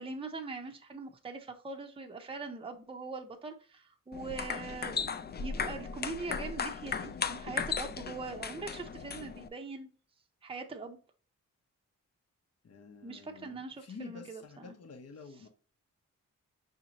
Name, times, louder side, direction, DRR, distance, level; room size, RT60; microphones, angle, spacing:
voice 1, 0.0-9.9 10.4-11.0 13.0-14.7, right 3 dB, 15° right, 0.6 m, -42 dB
sound 1, 4.1-9.5, left 5 dB, 30° left, 0.4 m, -36 dB
voice 2, 12.6-15.5, left 4 dB, 50° left, 0.7 m, -49 dB
5.0 x 2.7 x 2.8 m
wide cardioid pair, 95°, 32 cm